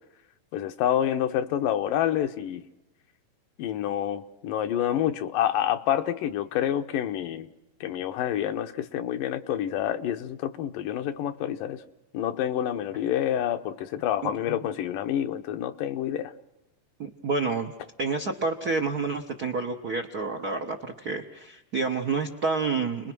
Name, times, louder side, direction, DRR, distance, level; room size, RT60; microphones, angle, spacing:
voice 1, 0.5-2.6 3.6-7.5 7.8-11.8 12.1-16.3, left 11 dB, 85° left, 7 dB, 2.7 m, -28 dB
voice 2, 14.2-14.6 17.0-17.7 18.0-23.1, right 4 dB, 80° right, 3 dB, 0.8 m, -29 dB
29.5 x 21.0 x 6.2 m, 0.95 s
omnidirectional pair, 3.7 m